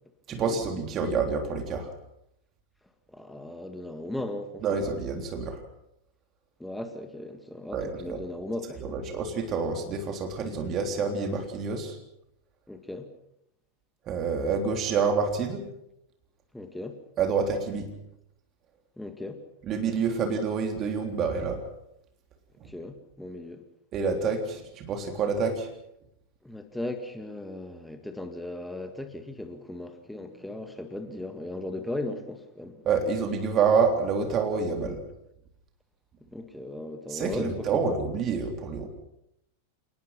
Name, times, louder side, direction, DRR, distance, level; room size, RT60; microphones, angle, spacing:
voice 1, 0.3-1.9 4.6-5.6 7.7-8.2 8.8-12.0 14.1-15.6 17.2-17.9 19.6-21.6 23.9-25.7 32.8-35.0 37.1-38.9, right 5 dB, 30° right, 4 dB, 3.5 m, -27 dB
voice 2, 3.1-4.9 6.6-9.1 12.7-13.1 16.5-17.0 19.0-19.4 22.7-23.6 26.4-32.8 34.8-35.0 36.3-38.0, left 1 dB, 5° left, 7 dB, 2.1 m, -37 dB
29.0 x 19.5 x 5.8 m, 0.80 s
figure-of-eight pair, 90°, 0 cm